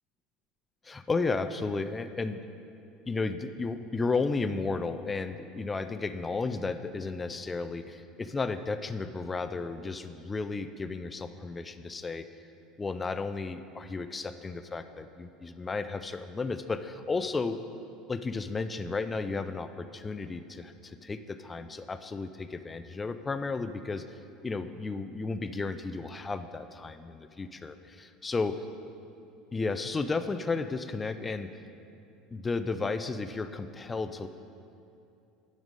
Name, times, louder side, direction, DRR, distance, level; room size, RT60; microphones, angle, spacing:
voice 1, 0.8-2.4 3.1-12.2 12.8-17.6 18.1-28.6 29.5-31.5 32.3-34.3, left 4 dB, 15° left, 10 dB, 0.3 m, -33 dB
9.5 x 5.2 x 6.4 m, 2.7 s
cardioid pair, 160°, 0 cm